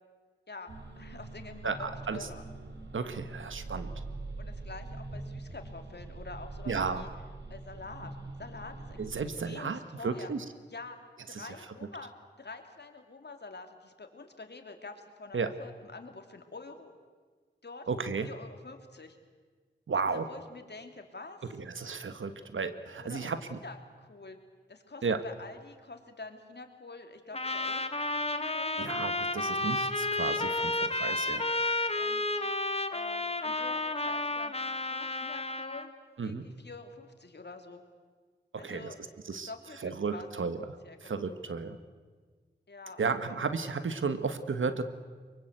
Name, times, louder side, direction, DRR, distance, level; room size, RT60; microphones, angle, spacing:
voice 1, 0.5-2.5 4.4-7.1 7.5-9.0 9.4-10.3 10.7-11.0 11.3-12.1 12.4-16.9 17.6-17.9 18.2-19.2 20.1-21.5 23.0-24.4 24.7-27.8 28.1-28.9 30.9-31.2 31.9-32.3 32.9-34.5 34.8-35.9 36.2-37.8 38.6-39.0 39.3-40.3 40.8-41.1 42.7-43.4, left 3 dB, 60° left, 5 dB, 2.9 m, -47 dB
sound 1, 0.7-9.3, right 2 dB, 65° right, 2.9 m, -43 dB
voice 2, 1.6-2.3 2.9-4.0 6.7-7.0 9.0-10.4 11.3-11.5 15.3-15.5 17.9-18.3 19.9-20.3 21.6-23.4 25.0-25.2 28.8-31.4 36.2-36.5 38.5-38.9 39.3-39.5 39.8-41.8 43.0-44.8, right 5 dB, 90° right, 10 dB, 1.5 m, -33 dB
Trumpet, 27.3-35.9, left 2 dB, 30° left, 1.7 m, -31 dB
23.5 x 23.5 x 8.1 m, 1.5 s
wide cardioid pair, 55°, 20 cm